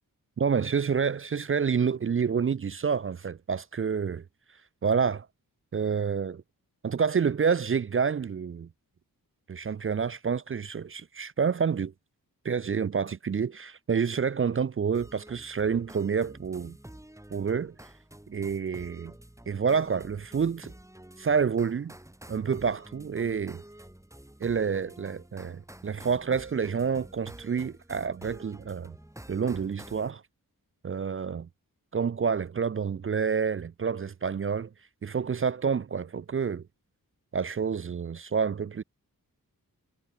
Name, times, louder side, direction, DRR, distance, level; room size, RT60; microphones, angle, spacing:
voice 1, 0.4-4.2 4.8-5.3 5.7-6.4 6.8-8.7 9.5-11.9 12.4-16.8 17.3-17.7 18.3-19.1 19.5-20.7 21.2-21.9 22.3-23.6 24.4-28.9 29.3-30.2 30.8-31.5 31.9-34.7 35.0-36.6 37.3-38.8, right 6 dB, 40° right, 0.4 m, -28 dB
sound 1, 14.9-30.1, right 1 dB, 10° right, 5.0 m, -49 dB
wide cardioid pair, 135°, 35 cm